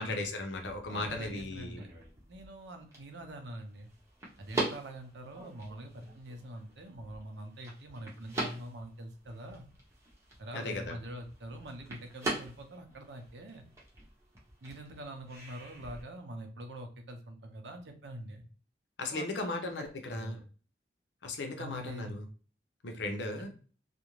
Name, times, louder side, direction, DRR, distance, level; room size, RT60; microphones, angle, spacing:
voice 1, 0.0-1.8 10.5-11.0 19.0-20.4 21.2-22.2 22.8-23.5, left 2 dB, 80° left, 5 dB, 0.6 m, -36 dB
sound 1, 0.5-16.0, right 1 dB, 15° right, 0.8 m, -43 dB
voice 2, 0.9-1.9 2.3-3.9 4.4-9.7 10.4-13.7 14.6-18.4 19.1-19.9 20.1-20.4 21.6-22.2 23.4-23.5, right 1 dB, 80° right, 4 dB, 0.6 m, -44 dB
2.5 x 2.1 x 3.0 m, 0.40 s
head